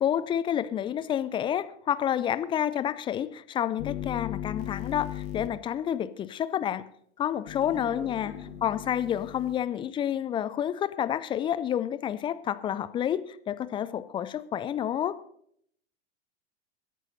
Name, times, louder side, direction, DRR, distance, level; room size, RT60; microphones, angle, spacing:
voice 1, 0.0-6.8 7.2-8.3 8.6-15.1, left 10 dB, 15° left, 14 dB, 0.4 m, -29 dB
sound 1, 3.8-5.5 7.5-9.5, left 13 dB, 45° left, 1.5 m, -37 dB
voice 2, 7.6-8.6, left 3 dB, 85° left, -2 dB, 3.4 m, -45 dB
25.5 x 11.0 x 2.7 m, 0.68 s
figure-of-eight pair, 95°, 35 cm